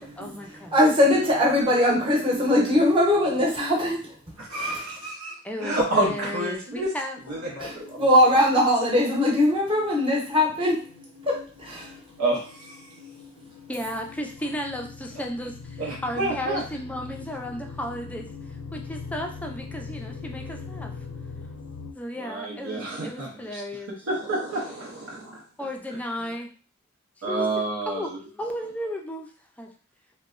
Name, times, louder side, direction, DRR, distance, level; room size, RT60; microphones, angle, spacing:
voice 1, 0.0-0.8 5.4-7.2 13.7-18.3 18.7-20.9 21.9-24.0 25.6-26.5 27.3-27.5 27.9-29.3 29.6-29.7, left 1 dB, 5° left, 2 dB, 0.3 m, -34 dB
voice 2, 0.7-4.1 4.5-4.8 7.6-7.7 8.0-10.8 11.2-11.9, left 1 dB, 25° right, -2 dB, 0.8 m, -21 dB
voice 3, 2.1-2.8 4.4-6.9 7.2-8.0 8.5-8.6 12.2-13.0 15.8-16.6 22.1-23.6 23.9-25.4 26.2-26.3 27.2-28.2, right 2 dB, 90° right, -3 dB, 0.6 m, -29 dB
sound 1, 7.2-21.9, left 4 dB, 85° left, 0.4 m, -42 dB
2.9 x 2.1 x 2.4 m, 0.38 s
head